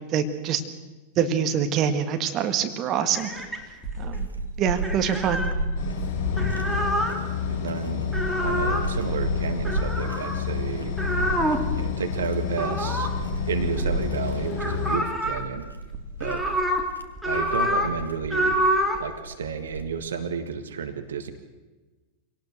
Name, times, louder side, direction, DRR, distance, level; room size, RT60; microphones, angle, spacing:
voice 1, 0.1-0.6 1.2-3.3 4.0-4.3 4.6-5.4, right 8 dB, 35° right, 7 dB, 1.8 m, -25 dB
sound 1, 3.1-4.2 4.8-5.5 6.1-7.2 8.0-8.9 9.6-10.5 11.0-11.7 12.6-14.1 14.4-15.4 15.9-16.8 17.2-17.9 18.2-19.0, equal, 5° right, 3.0 m, -27 dB
sound 2, 3.4-20.2, right 2 dB, 85° right, 1.3 m, -33 dB
sound 3, 5.8-15.0, left 9 dB, 45° left, 5.9 m, -30 dB
voice 2, 7.5-10.9 11.7-13.1 13.5-15.7 16.2-16.4 17.2-18.6 19.0-21.3, right 6 dB, 65° right, 8 dB, 1.7 m, -31 dB
25.5 x 18.5 x 6.5 m, 1.2 s
figure-of-eight pair, 90°, 0 cm